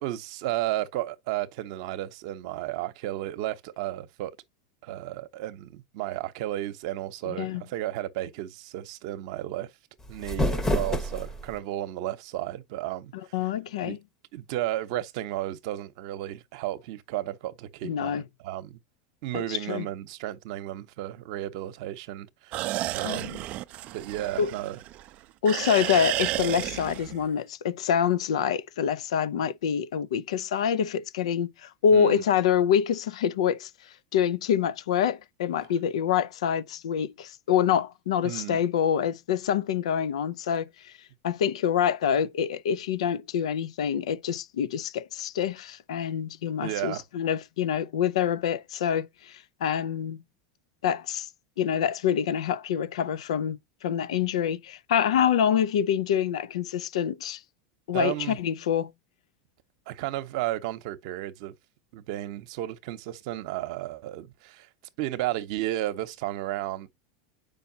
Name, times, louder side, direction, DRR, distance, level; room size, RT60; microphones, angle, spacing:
voice 1, 0.0-4.4 4.8-9.7 10.1-13.4 13.8-14.0 14.3-18.8 19.2-22.7 22.9-23.5 23.9-24.8 31.9-32.2 38.2-38.6 46.6-47.0 57.9-58.4 59.9-61.5 61.9-64.7 65.0-66.9, right 14 dB, 65° right, 0.8 m, -33 dB
voice 2, 7.3-7.6 13.3-14.0 17.8-18.2 19.3-19.9 23.0-23.4 24.4-24.5 25.4-33.7 34.1-40.9 41.2-50.2 50.8-51.3 51.6-57.4 57.9-58.9, left 8 dB, 85° left, 0.5 m, -26 dB
sound 1, 10.0-11.6, left 1 dB, 15° left, 0.9 m, -28 dB
sound 2, 22.5-25.1 25.5-27.3, right 15 dB, 45° right, 0.4 m, -32 dB
7.0 x 5.3 x 2.7 m
supercardioid pair, 115°, 3 cm